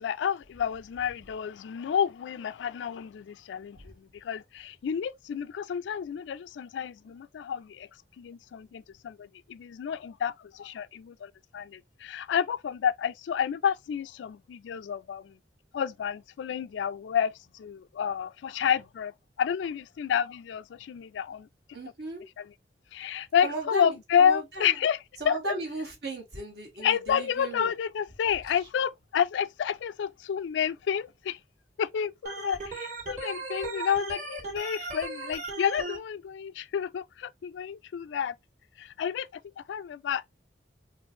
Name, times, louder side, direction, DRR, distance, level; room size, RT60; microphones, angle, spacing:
voice 1, 0.0-7.9 8.2-15.4 15.7-21.5 22.4-22.5 22.9-25.0 25.3-25.4 26.8-31.4 31.8-38.3 38.8-40.3, left 8 dB, 90° left, 0.3 m, -30 dB
voice 2, 21.7-22.2 23.4-24.7 25.2-27.7, right 1 dB, 65° right, 1.8 m, -36 dB
Organ, 32.3-36.0, right 2 dB, 45° right, 2.0 m, -37 dB
4.3 x 2.5 x 2.7 m
head